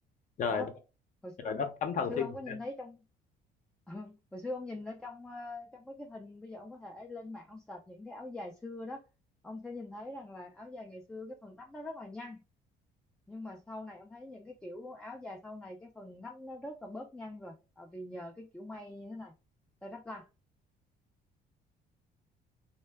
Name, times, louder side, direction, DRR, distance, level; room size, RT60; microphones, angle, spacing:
voice 1, 0.4-0.7 1.4-2.3, left 6 dB, 50° left, 0.6 m, -32 dB
voice 2, 1.2-1.6 2.1-3.0 3.9-9.0 9.4-12.4 13.3-19.3 19.8-20.3, left 2 dB, 5° left, 0.3 m, -43 dB
2.1 x 2.1 x 3.3 m
cardioid pair, 110°, 17 cm